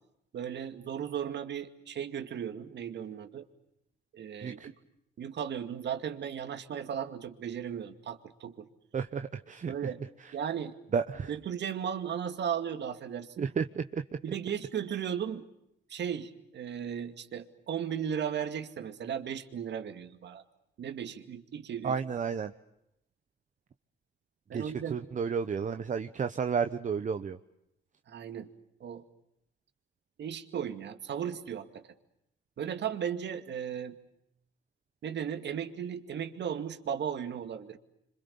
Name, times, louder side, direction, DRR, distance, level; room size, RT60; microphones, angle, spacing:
voice 1, 0.3-3.5 4.1-4.7 5.2-8.7 9.7-10.0 10.3-10.7 11.3-13.5 14.2-15.5 15.9-20.4 20.8-22.0 24.5-24.9 28.1-28.5 28.8-29.0 30.2-31.8 32.6-34.0 35.0-37.8, right 8 dB, 60° right, 8 dB, 2.3 m, -36 dB
voice 2, 4.4-4.7 8.9-9.9 10.2-10.3 10.9-11.3 13.4-14.0 21.8-22.5 24.5-27.4, right 6 dB, 40° right, 8 dB, 1.0 m, -32 dB
27.5 x 25.5 x 7.0 m, 0.82 s
cardioid pair, 90°, 20 cm